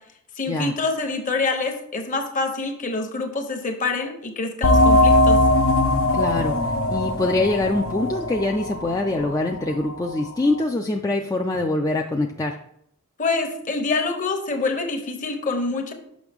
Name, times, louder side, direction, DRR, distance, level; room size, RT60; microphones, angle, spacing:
voice 1, 0.4-5.4 13.2-15.9, left 3 dB, 35° left, 5 dB, 0.9 m, -26 dB
sound 1, 4.6-9.9, left 1 dB, 65° left, 0.7 m, -19 dB
voice 2, 6.1-6.6 6.9-12.6, left 2 dB, 15° left, 2 dB, 0.3 m, -24 dB
6.2 x 5.7 x 3.5 m, 0.72 s
head